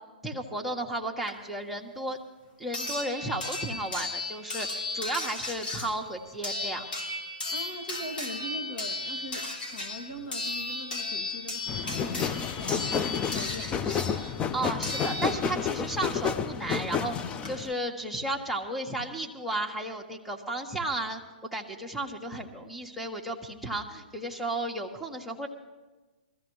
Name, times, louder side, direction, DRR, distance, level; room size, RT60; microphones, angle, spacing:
voice 1, 0.2-2.2 2.6-6.8 14.5-21.2 21.5-25.5, right 1 dB, ahead, -1 dB, 1.4 m, -33 dB
sound 1, 1.3-1.4 2.7-15.7 17.0-17.1 17.4-17.5, left 2 dB, 70° left, 3.5 m, -35 dB
voice 2, 7.5-13.9, equal, 50° left, 5 dB, 2.3 m, -41 dB
sound 2, 11.7-17.7, left 7 dB, 20° left, 0.5 m, -30 dB
22.0 x 14.5 x 3.2 m, 1.2 s
figure-of-eight pair, 120°, 5 cm